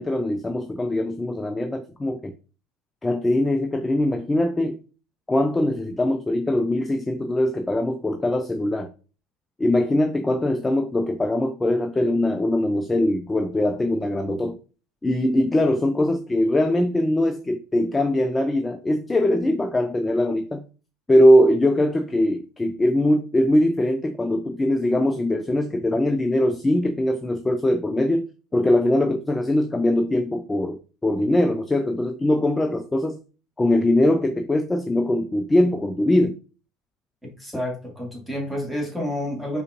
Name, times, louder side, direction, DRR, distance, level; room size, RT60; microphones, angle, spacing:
voice 1, 0.0-2.3 3.0-4.8 5.3-8.9 9.6-14.6 15.0-20.6 21.1-28.2 28.5-33.2 33.6-36.4, left 1 dB, 15° left, 0.4 m, -21 dB
voice 2, 37.2-39.6, left 1 dB, 5° right, 1.6 m, -29 dB
5.1 x 2.5 x 2.5 m
figure-of-eight pair, 70°, 0 cm